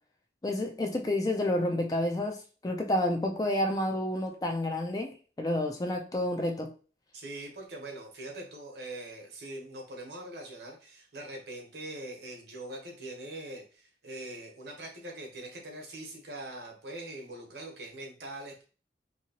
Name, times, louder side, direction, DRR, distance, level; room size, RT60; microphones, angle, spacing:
voice 1, 0.4-6.7, left 1 dB, 20° left, 0.3 m, -30 dB
voice 2, 7.1-18.6, right 1 dB, 70° right, 1.0 m, -42 dB
2.9 x 2.7 x 2.8 m
head